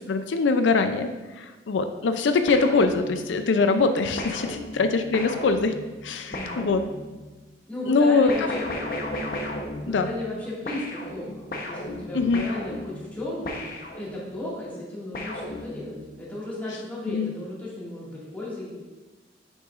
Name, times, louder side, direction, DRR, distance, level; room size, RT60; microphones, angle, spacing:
voice 1, 0.1-5.7 6.0-6.8 7.9-8.5 9.9-10.1 12.1-12.5 17.1-17.3, left 4 dB, 90° left, 8 dB, 0.4 m, -23 dB
sound 1, 2.5-3.5 4.2-7.3 8.3-10.4 10.7-14.4 15.1-16.1, left 1 dB, 55° left, 0.9 m, -35 dB
voice 2, 6.3-6.7 7.7-8.6 9.8-13.6 13.9-18.7, left 1 dB, 10° left, -8 dB, 1.9 m, -34 dB
7.8 x 6.3 x 2.5 m, 1.2 s
head